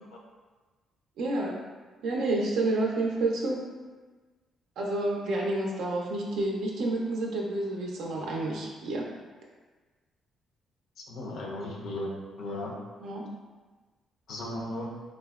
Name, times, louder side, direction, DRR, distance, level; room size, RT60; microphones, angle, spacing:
voice 1, 1.2-1.6 2.0-3.6 4.8-9.0 13.0-13.3, right 2 dB, 80° right, -2 dB, 0.4 m, -29 dB
voice 2, 11.1-12.1 12.4-12.7 14.3-14.9, left 1 dB, 75° left, -1 dB, 0.5 m, -35 dB
3.5 x 2.0 x 2.3 m, 1.3 s
cardioid pair, 90°, 0 cm